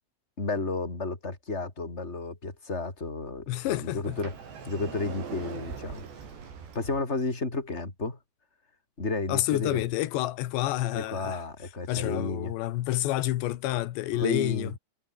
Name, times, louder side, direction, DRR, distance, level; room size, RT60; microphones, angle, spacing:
voice 1, 0.4-4.3 4.7-6.0 6.7-8.2 9.0-9.8 10.9-12.5 14.1-14.7, left 3 dB, 15° left, 4.4 m, -32 dB
voice 2, 3.5-4.2 9.3-11.4 11.9-14.7, left 15 dB, 90° left, 3.5 m, -29 dB
Sliding door, 4.0-7.0, right 6 dB, 75° right, 7.1 m, -41 dB
omnidirectional pair, 4.9 m